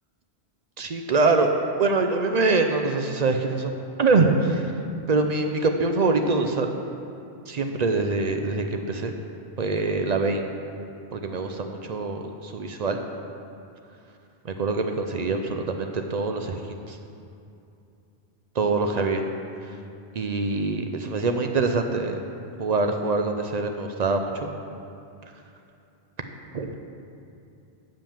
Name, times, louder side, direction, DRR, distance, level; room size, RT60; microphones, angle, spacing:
voice 1, 0.8-1.5 1.8-4.7 5.1-6.7 7.5-9.1 9.6-10.5 11.1-13.0 14.4-17.0 18.6-19.3 19.6-19.8 20.1-22.2 22.6-24.5 26.5-26.7, right 3 dB, 55° right, 5 dB, 0.5 m, -24 dB
7.5 x 5.2 x 7.1 m, 2.6 s
omnidirectional pair, 1.1 m